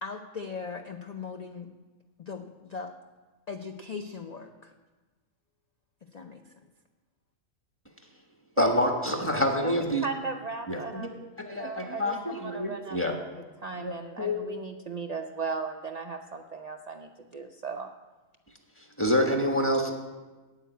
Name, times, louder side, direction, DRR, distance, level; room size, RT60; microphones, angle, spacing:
voice 1, 0.0-1.7 2.2-2.9 3.5-4.7 6.1-6.5, left 5 dB, 50° left, 5 dB, 0.5 m, -39 dB
voice 2, 8.6-10.1 10.7-11.1 11.4-13.2 13.8-14.4 19.0-19.9, left 1 dB, 10° left, 2 dB, 1.3 m, -27 dB
voice 3, 10.0-11.2 11.5-13.1 13.6-17.9, right 4 dB, 75° right, 4 dB, 0.3 m, -36 dB
9.0 x 7.8 x 9.2 m, 1.3 s
omnidirectional pair, 1.4 m